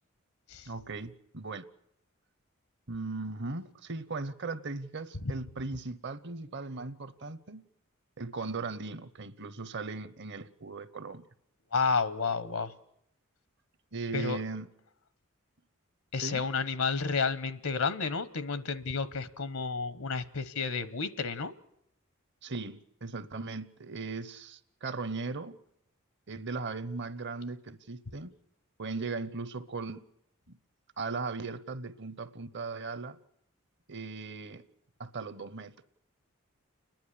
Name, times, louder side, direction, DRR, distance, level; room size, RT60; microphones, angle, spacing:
voice 1, 0.6-1.6 2.9-7.7 8.2-11.3 13.9-14.7 16.2-16.5 22.4-25.6 26.3-28.3 28.8-30.0 30.5-30.6 31.0-33.2 33.9-34.7 35.0-35.9, right 3 dB, 55° right, 0.9 m, -38 dB
voice 2, 11.7-12.7 14.1-14.4 16.1-21.5, left 4 dB, 80° left, 1.0 m, -31 dB
29.5 x 10.5 x 9.9 m
head